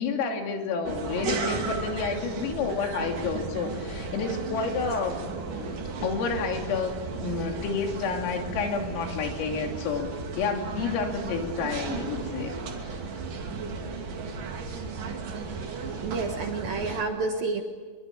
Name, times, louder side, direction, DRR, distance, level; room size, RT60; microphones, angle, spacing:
voice 1, 0.0-5.3 6.0-10.1 10.4-12.6 12.8-12.9, left 5 dB, 80° left, 3 dB, 5.4 m, -30 dB
sound 1, 0.8-17.0, right 4 dB, 45° right, 3.7 m, -34 dB
voice 2, 16.0-17.6, right 4 dB, 65° right, 3 dB, 2.4 m, -29 dB
27.0 x 23.5 x 8.7 m, 1.5 s
omnidirectional pair, 6.0 m